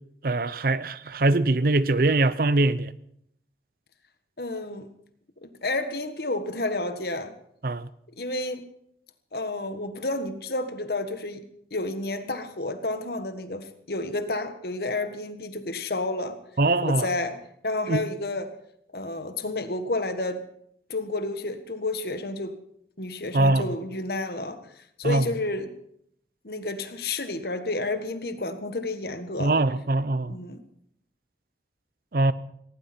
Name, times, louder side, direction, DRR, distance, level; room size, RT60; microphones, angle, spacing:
voice 1, 0.2-2.9 7.6-7.9 16.6-17.1 17.9-18.0 23.3-23.7 25.0-25.2 29.4-30.3 32.1-32.3, right 2 dB, 55° right, 0.6 m, -22 dB
voice 2, 4.4-4.9 5.4-7.3 8.2-8.6 9.3-11.4 11.7-16.4 16.8-17.4 17.6-18.5 18.9-20.4 20.9-22.6 23.0-25.7 26.4-29.5 30.3-30.6, left 2 dB, 60° left, 1.5 m, -30 dB
19.0 x 17.0 x 4.4 m
head